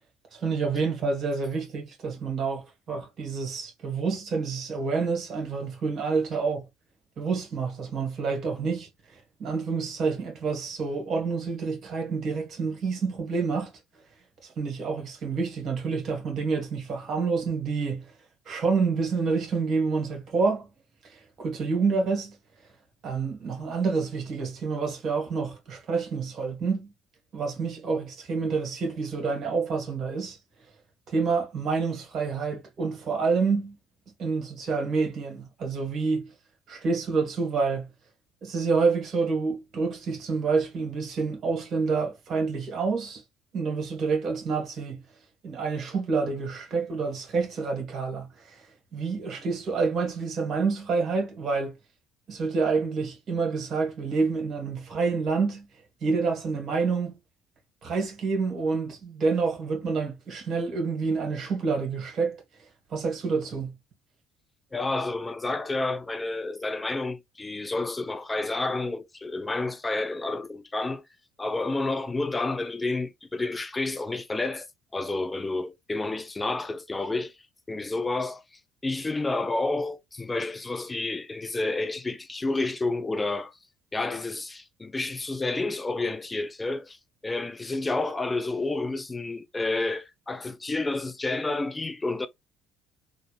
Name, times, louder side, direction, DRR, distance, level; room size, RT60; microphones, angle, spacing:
voice 1, 0.3-6.7 7.2-13.7 14.4-18.1 18.5-20.7 21.1-22.3 23.0-26.9 27.3-30.4 31.1-33.8 34.2-36.3 36.7-37.9 38.4-43.2 43.5-45.0 45.4-48.7 48.9-51.7 52.3-55.7 56.0-57.1 57.8-62.4 62.9-63.7, right 4 dB, 50° right, 1.8 m, -28 dB
voice 2, 64.7-71.0 71.4-74.7 74.9-77.4 77.7-83.6 83.9-87.0 87.2-92.3, left 2 dB, 20° left, 0.4 m, -30 dB
3.7 x 2.5 x 3.3 m
hypercardioid pair, 55°, 0 cm